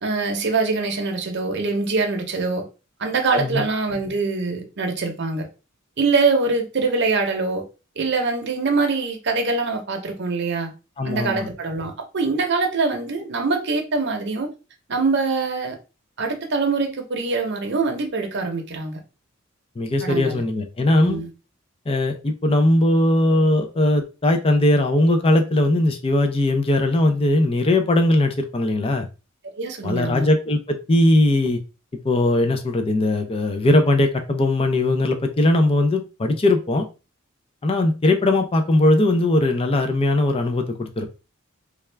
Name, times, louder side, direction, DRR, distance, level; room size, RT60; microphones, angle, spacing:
voice 1, 0.0-2.6 3.0-5.5 6.0-7.6 8.0-10.7 11.0-14.5 14.9-15.8 16.2-19.0 20.0-20.4 21.0-21.3 29.6-30.3, right 3 dB, 55° right, 0.7 m, -23 dB
voice 2, 11.0-11.5 19.8-21.2 21.9-29.1 29.8-31.6 32.0-36.9 37.6-41.1, left 1 dB, 30° left, 0.4 m, -19 dB
3.4 x 2.3 x 3.2 m
head